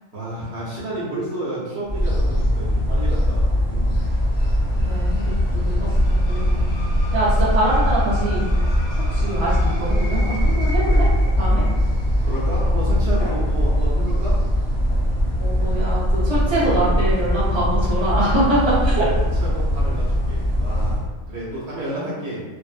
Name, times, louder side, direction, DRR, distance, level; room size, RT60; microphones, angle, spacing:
voice 1, 0.1-3.9 12.2-14.4 18.6-22.4, right 1 dB, 65° right, -8 dB, 0.9 m, -31 dB
sound 1, 1.9-21.1, equal, 20° left, 0.8 m, -20 dB
sound 2, 3.9-13.9, equal, 60° left, 0.6 m, -40 dB
voice 2, 4.8-6.6 7.1-8.5 9.1-11.1 11.4-11.6 15.4-19.0 21.9-22.1, right 1 dB, 25° right, -10 dB, 0.8 m, -24 dB
2.5 x 2.0 x 2.4 m, 1.3 s
omnidirectional pair, 1.3 m